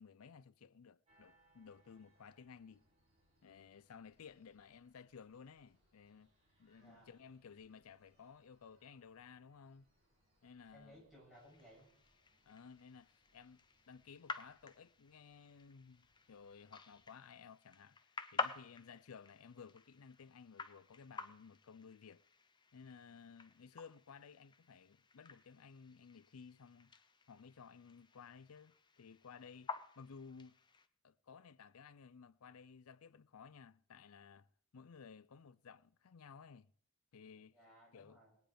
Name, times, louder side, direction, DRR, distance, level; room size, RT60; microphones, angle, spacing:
voice 1, 0.0-2.8 3.4-6.3 6.6-9.9 10.4-11.0 12.4-18.0 18.3-22.2 22.7-27.0 27.3-30.5 31.0-34.5 34.7-36.7 37.1-37.6 37.9-38.2, left 6 dB, 80° left, 0.5 m, -57 dB
sound 1, 1.1-17.0, right 1 dB, 30° right, 6.5 m, -77 dB
voice 2, 6.8-7.1 10.7-11.9 37.5-38.3, equal, ahead, 7.6 m, -61 dB
sound 2, 11.3-30.9, left 4 dB, 20° left, 0.7 m, -50 dB
20.0 x 9.3 x 5.1 m
head